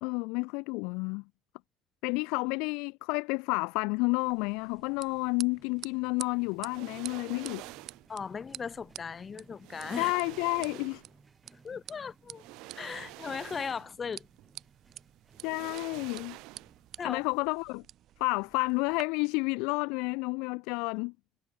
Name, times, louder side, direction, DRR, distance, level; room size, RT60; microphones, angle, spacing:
voice 1, 0.0-1.2 2.0-7.7 10.0-11.0 15.4-16.4 17.0-17.8 18.2-21.1, left 29 dB, 90° left, 0.4 m, -30 dB
sound 1, 4.2-17.3, right 3 dB, 20° right, 6.4 m, -62 dB
sound 2, 4.2-19.0, right 12 dB, 60° right, 6.3 m, -50 dB
sound 3, 6.6-8.1 9.2-9.3 9.6-11.2 12.3-14.0 14.4-14.5 15.3-16.9 17.2-17.3, right 23 dB, 80° right, 5.3 m, -47 dB
voice 2, 8.1-10.1 11.6-12.4 12.7-14.3 17.0-17.2, left 6 dB, 30° left, 0.7 m, -37 dB
cardioid pair, 115°, 0 cm